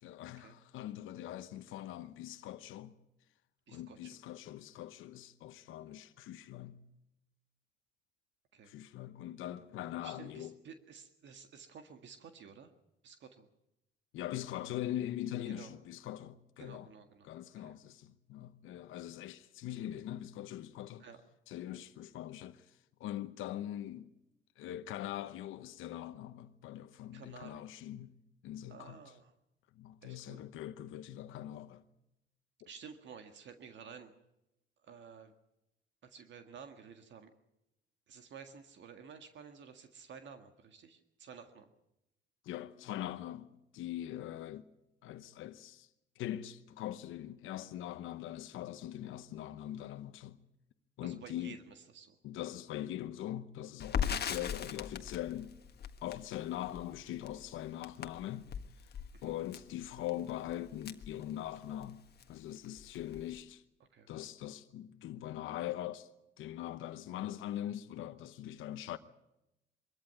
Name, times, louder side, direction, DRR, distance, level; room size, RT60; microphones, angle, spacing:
voice 1, 0.0-2.9 3.7-6.8 8.6-10.5 14.1-16.9 17.2-21.0 21.5-24.1 24.6-28.1 28.4-29.0 29.7-31.8 32.6-32.7 42.4-44.7 45.0-45.9 46.2-50.4 51.0-51.6 52.2-55.5 56.0-58.5 58.8-58.9 59.2-63.6 64.1-66.1 66.4-69.0, left 12 dB, 90° left, 1.0 m, -42 dB
voice 2, 3.7-4.2 8.5-8.7 10.0-12.7 13.0-13.5 15.5-15.7 16.6-17.3 17.6-17.7 21.0-21.2 27.1-27.6 28.7-29.3 30.0-30.4 32.6-34.1 34.8-35.3 36.0-37.3 38.1-41.7 51.0-52.1 54.0-54.1 59.1-59.3 63.9-64.1, right 6 dB, 65° right, 1.8 m, -52 dB
Crackle, 53.8-61.9 62.2-62.3 62.6-63.4, left 8 dB, 55° left, 1.5 m, -40 dB
23.0 x 14.0 x 9.4 m
cardioid pair, 90°, 20 cm